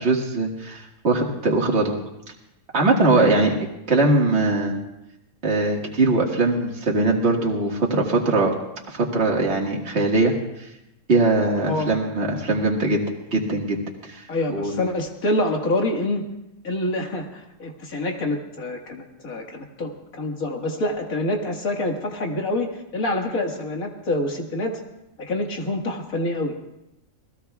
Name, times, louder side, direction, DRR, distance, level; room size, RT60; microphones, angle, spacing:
voice 1, 0.0-2.0 2.7-3.5 3.9-4.7 5.4-8.5 8.9-10.3 11.1-13.0 13.3-13.8 14.1-14.2 14.5-14.7, right 2 dB, 50° right, -1 dB, 2.1 m, -21 dB
voice 2, 3.1-3.5 11.7-11.9 14.3-16.2 16.6-24.8 25.2-26.5, left 1 dB, 80° left, 1 dB, 2.2 m, -26 dB
28.0 x 19.0 x 2.4 m, 0.89 s
omnidirectional pair, 1.4 m